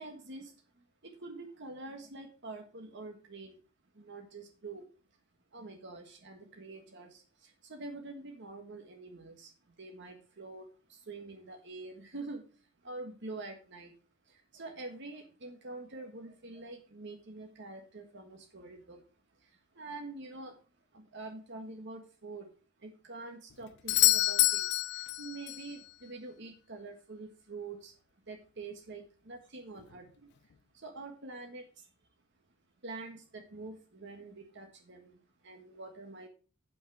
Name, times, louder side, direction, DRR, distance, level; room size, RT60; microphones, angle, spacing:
voice 1, 0.0-3.6 3.9-4.9 5.5-13.9 14.2-19.1 19.4-20.6 20.9-22.5 22.8-28.0 28.3-30.3 30.7-31.9 32.8-36.3, right 3 dB, 55° right, 3 dB, 1.5 m, -46 dB
Doorbell, 23.9-25.7 29.8-29.9, left 18 dB, 55° left, 0.3 m, -27 dB
7.4 x 6.2 x 6.0 m, 0.37 s
head